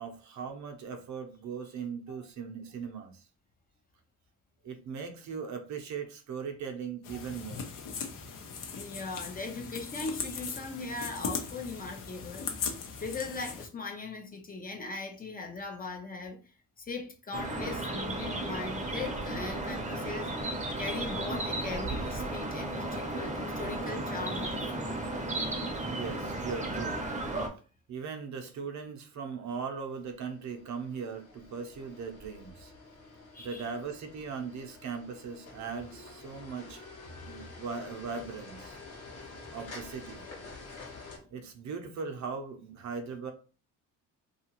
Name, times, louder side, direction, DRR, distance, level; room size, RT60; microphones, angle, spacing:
voice 1, 0.0-3.2 4.6-7.7 25.9-27.0 27.9-32.7 33.4-36.8 37.3-38.8 39.5-40.2 41.3-43.3, right 5 dB, 55° right, 0.7 m, -39 dB
sound 1, 7.0-13.7, left 6 dB, 70° left, 0.7 m, -39 dB
voice 2, 8.7-12.5 13.0-16.4 16.8-20.3 20.8-25.0 33.3-33.7 37.2-37.5, left 3 dB, 25° left, 0.5 m, -39 dB
sound 2, 17.3-27.5, right 2 dB, 20° right, 0.7 m, -34 dB
sound 3, 30.1-41.2, left 3 dB, 50° left, 1.0 m, -49 dB
2.8 x 2.4 x 2.9 m
cardioid pair, 120°, 33 cm